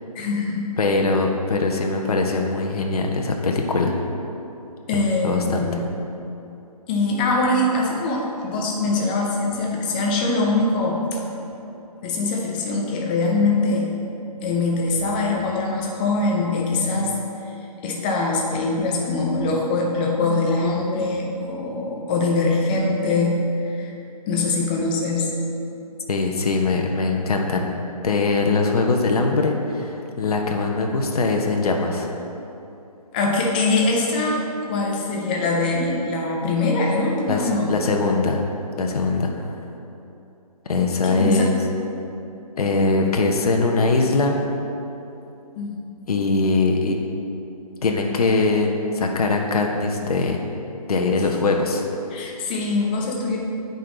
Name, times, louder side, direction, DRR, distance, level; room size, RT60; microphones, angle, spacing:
voice 1, 0.1-0.7 4.9-5.8 6.9-11.2 12.0-13.9 14.4-17.2 17.8-23.4 23.6-23.9 24.3-25.3 33.1-37.7 41.0-41.5 45.6-45.8 52.1-53.4, left 3 dB, 15° left, -1 dB, 0.5 m, -23 dB
voice 2, 0.8-3.9 4.9-5.8 26.1-27.7 28.0-32.1 37.3-38.4 38.8-39.6 40.7-41.5 42.6-44.4 46.1-47.0 47.8-50.4 50.9-51.9, left 3 dB, 70° left, 2 dB, 0.9 m, -21 dB
7.6 x 5.3 x 3.8 m, 2.8 s
hypercardioid pair, 155°, 20 cm